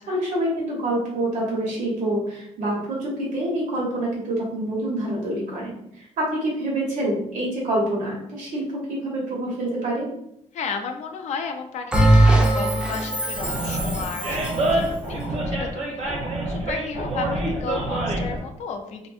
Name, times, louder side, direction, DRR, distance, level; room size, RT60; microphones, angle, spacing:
voice 1, 0.0-10.1, right 1 dB, 80° right, -4 dB, 1.1 m, -26 dB
voice 2, 10.5-16.1 16.5-19.1, left 5 dB, 60° left, 5 dB, 0.4 m, -34 dB
Bell, 11.9-14.7, right 1 dB, 5° right, 0.4 m, -20 dB
Animal, 13.3-18.4, right 1 dB, 55° right, 0.8 m, -26 dB
2.5 x 2.4 x 2.5 m, 0.76 s
cardioid pair, 130°, 13 cm